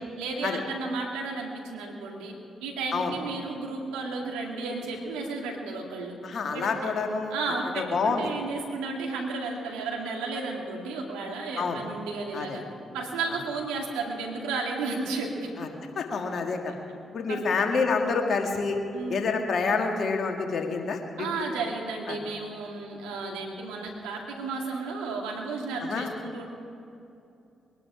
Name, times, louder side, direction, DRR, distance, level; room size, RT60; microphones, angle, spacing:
voice 1, 0.2-2.3 2.6-6.2 6.5-7.0 7.3-12.6 12.9-15.5 16.7-16.8 17.3-17.4 18.9-19.3 21.2-26.5, right 3 dB, 85° right, 1 dB, 2.1 m, -33 dB
voice 2, 6.2-7.3 7.8-8.2 11.6-11.8 12.3-12.6 13.3-13.4 15.6-15.7 16.0-16.7 17.1-18.8 19.1-21.3 22.1-22.2 25.8-26.1, left 4 dB, 60° left, 3 dB, 1.9 m, -28 dB
22.0 x 11.5 x 5.0 m, 2.7 s
hypercardioid pair, 45°, 0 cm